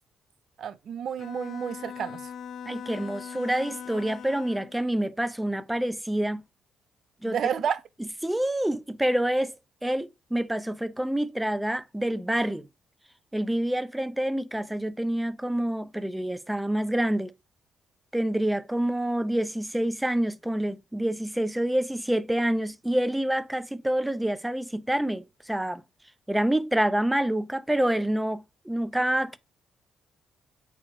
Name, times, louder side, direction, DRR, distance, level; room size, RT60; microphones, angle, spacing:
voice 1, 0.6-2.3 7.2-7.8, right 8 dB, 60° right, 0.5 m, -30 dB
Bowed string instrument, 1.2-4.8, left 8 dB, 60° left, 0.6 m, -40 dB
voice 2, 2.7-6.4 7.2-7.4 8.2-9.6 9.8-12.7 13.3-17.3 18.1-25.8 26.3-29.4, right 1 dB, 5° right, 0.4 m, -27 dB
4.4 x 3.7 x 3.0 m
cardioid pair, 90°, 0 cm